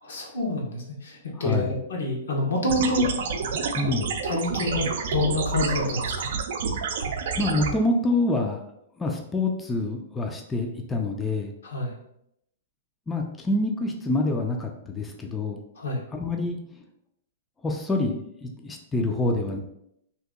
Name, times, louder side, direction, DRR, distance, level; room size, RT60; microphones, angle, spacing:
voice 1, 0.0-3.1 4.2-6.4 11.6-11.9 15.8-16.0, left 2 dB, 90° left, -1 dB, 1.0 m, -27 dB
voice 2, 1.4-1.7 3.7-4.2 7.4-8.6 9.0-11.5 13.1-15.6 16.1-16.6 17.6-19.6, left 2 dB, 10° left, 2 dB, 0.4 m, -26 dB
sound 1, 2.7-7.7, right 5 dB, 65° right, 0.5 m, -29 dB
2.8 x 2.5 x 3.6 m, 0.76 s
hypercardioid pair, 145°, 0 cm